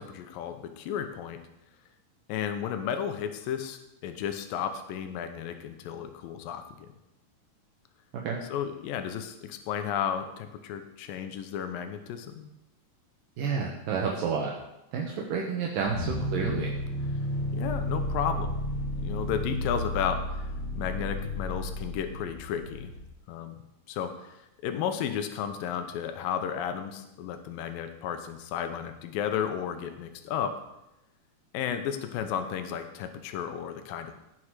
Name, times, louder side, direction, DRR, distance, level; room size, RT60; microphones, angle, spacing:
voice 1, 0.0-1.4 2.3-6.9 8.5-12.5 16.1-16.2 17.5-18.6 19.0-22.9 23.3-23.6 23.9-24.4 24.6-30.6 31.5-34.1, left 8 dB, 80° left, 7 dB, 2.6 m, -33 dB
voice 2, 13.4-14.5 14.9-16.7, right 5 dB, 70° right, -1 dB, 2.8 m, -30 dB
sound 1, 15.9-23.1, left 1 dB, 30° left, 3.0 m, -32 dB
17.0 x 6.4 x 4.9 m, 0.89 s
omnidirectional pair, 4.2 m